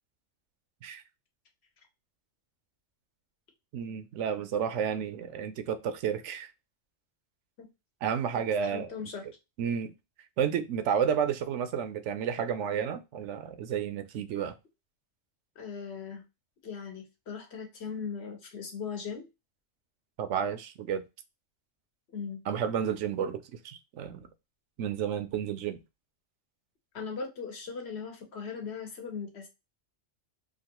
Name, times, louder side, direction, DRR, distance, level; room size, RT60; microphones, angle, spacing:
voice 1, 3.7-6.5 8.0-8.9 9.6-9.9 10.4-14.5 20.2-21.0 22.5-24.3 24.8-25.8, right 8 dB, 85° right, 10 dB, 0.9 m, -31 dB
voice 2, 8.3-9.2 15.6-16.2 16.6-19.3 22.1-22.4 26.9-29.5, left 5 dB, 65° left, 3 dB, 1.2 m, -39 dB
3.0 x 2.5 x 2.9 m, 0.25 s
omnidirectional pair, 1.2 m